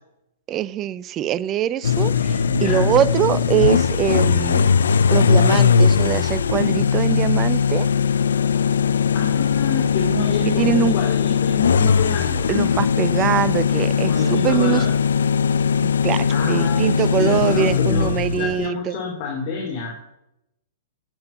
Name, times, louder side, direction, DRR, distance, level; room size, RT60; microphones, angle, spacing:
voice 1, 0.5-4.7 5.1-7.9 10.6-11.0 12.5-14.9 15.8-19.0, right 11 dB, 30° right, 0.5 m, -23 dB
sound 1, 1.8-18.7, left 6 dB, 75° left, 0.5 m, -19 dB
voice 2, 2.5-2.9 9.1-12.5 14.1-14.9 16.3-20.2, left 5 dB, 50° left, 2.9 m, -28 dB
10.5 x 8.9 x 7.1 m
hypercardioid pair, 115°, 0 cm